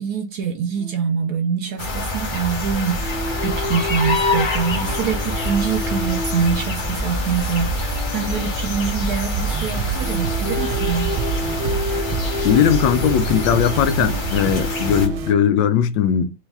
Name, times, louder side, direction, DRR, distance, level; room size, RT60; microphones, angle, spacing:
voice 1, 0.0-11.1, right 6 dB, 70° right, 0.9 m, -25 dB
sound 1, 0.8-0.9 1.2-1.4 3.0-9.6 10.0-15.6, left 1 dB, 20° right, 0.5 m, -31 dB
sound 2, 1.8-15.1, left 1 dB, 45° left, 0.7 m, -26 dB
sound 3, 9.3-15.3, right 9 dB, 90° right, 1.4 m, -28 dB
voice 2, 12.4-16.3, left 9 dB, 80° left, 1.3 m, -18 dB
3.3 x 3.1 x 3.4 m
omnidirectional pair, 2.1 m